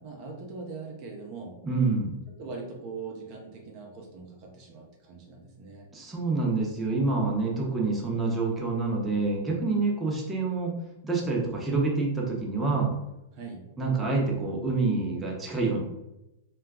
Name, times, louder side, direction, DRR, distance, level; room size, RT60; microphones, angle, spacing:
voice 1, 0.0-1.6 2.3-5.9 13.3-13.7, right 4 dB, 45° right, 0 dB, 0.6 m, -41 dB
voice 2, 1.6-2.2 5.9-10.7 11.0-12.9 13.8-15.8, right 3 dB, 10° right, -2 dB, 0.7 m, -27 dB
2.4 x 2.2 x 3.5 m, 0.92 s
hypercardioid pair, 120°, 0 cm